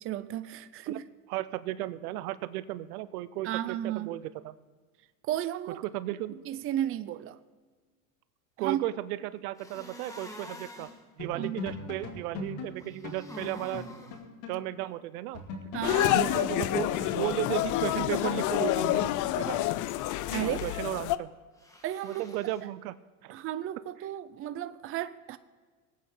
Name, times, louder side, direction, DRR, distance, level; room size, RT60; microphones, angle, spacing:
voice 1, 0.0-1.0 3.4-4.1 5.3-5.8 6.5-7.4 8.6-8.9 11.3-11.6 15.7-16.2 20.3-20.6 21.8-22.2 23.3-25.4, right 12 dB, 30° right, 0.5 m, -33 dB
voice 2, 1.3-4.5 5.7-6.4 8.6-10.9 11.2-13.8 14.5-15.4 16.1-19.1 19.4-19.6 20.4-21.3 22.0-23.0 23.2-23.3, right 15 dB, 75° right, 0.7 m, -35 dB
sound 1, 9.6-11.0 12.8-14.2 20.0-20.8 21.6-22.6, left 1 dB, 5° left, 1.6 m, -48 dB
sound 2, 10.8-10.9 11.2-14.6 14.9-15.0 15.3-19.6, left 3 dB, 65° left, 2.4 m, -40 dB
sound 3, 15.8-21.2, left 14 dB, 45° left, 0.5 m, -28 dB
19.0 x 8.5 x 3.9 m
supercardioid pair, 105°, 44 cm